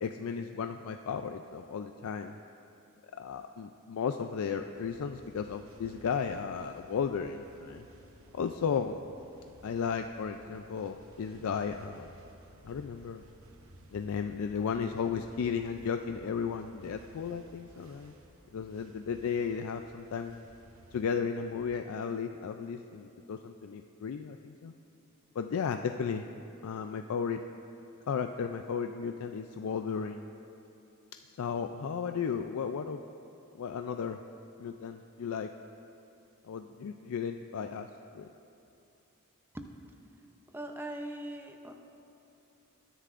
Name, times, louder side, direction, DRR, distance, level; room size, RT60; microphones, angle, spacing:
voice 1, 0.0-2.3 3.2-7.9 8.3-9.0 9.6-12.1 12.6-13.2 13.9-18.1 18.5-20.4 20.9-24.7 25.3-26.2 26.6-27.4 28.1-30.2 31.4-33.0 33.5-34.2 34.6-35.5 36.4-37.9 38.1-38.3, left 6 dB, 75° left, 6 dB, 0.4 m, -34 dB
sound 1, 4.7-21.1, right 1 dB, 65° right, 1.0 m, -57 dB
voice 2, 40.5-41.7, right 1 dB, 10° right, 4 dB, 0.6 m, -40 dB
20.5 x 10.0 x 2.5 m, 2.9 s
head